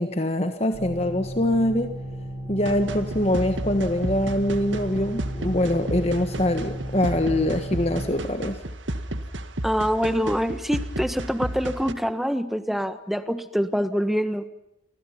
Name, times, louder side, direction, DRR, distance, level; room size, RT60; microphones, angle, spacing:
voice 1, 0.0-1.9 2.5-8.6, left 1 dB, 30° left, 7 dB, 1.5 m, -24 dB
sound 1, 0.7-8.0, equal, 15° right, 6.4 m, -35 dB
sound 2, 2.7-11.9, right 1 dB, 80° right, 1.9 m, -33 dB
voice 2, 9.6-14.5, equal, ahead, 10 dB, 1.4 m, -25 dB
29.5 x 24.5 x 5.8 m, 0.89 s
head